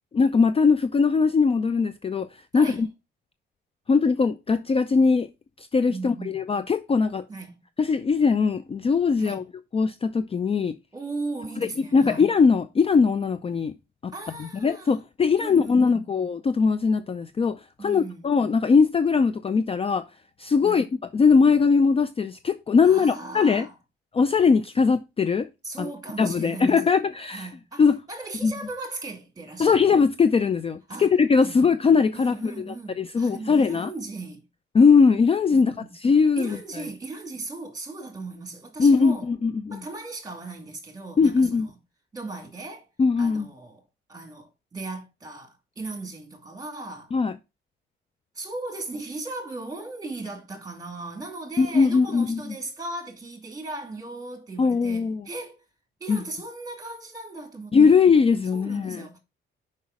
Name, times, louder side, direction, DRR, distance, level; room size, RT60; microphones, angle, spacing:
voice 1, 0.1-2.3 2.5-2.9 3.9-5.3 5.7-7.2 7.8-9.4 9.7-10.8 11.9-13.7 14.0-14.1 14.4-20.0 20.4-20.9 21.1-23.7 24.1-25.5 25.8-25.9 26.2-27.5 27.8-28.0 28.4-28.5 29.6-33.9 34.7-36.6 38.8-39.8 41.2-41.7 43.0-43.5 47.1-47.3 51.6-52.5 54.6-55.2 56.1-56.2 57.7-59.1, left 5 dB, 30° left, 0.5 m, -20 dB
voice 2, 2.5-2.8 5.9-6.4 7.3-7.6 9.2-9.5 10.9-12.3 14.1-15.0 15.4-16.2 17.8-18.3 20.6-20.9 22.8-23.8 25.6-27.0 27.3-29.8 30.9-31.1 31.4-31.7 32.1-34.4 35.5-36.0 36.4-39.3 39.7-41.7 42.1-42.9 43.2-43.8 44.1-47.1 48.3-55.6 56.0-58.0 58.5-59.2, right 3 dB, 20° right, 2.5 m, -37 dB
5.5 x 5.3 x 4.8 m
cardioid pair, 90°, 20 cm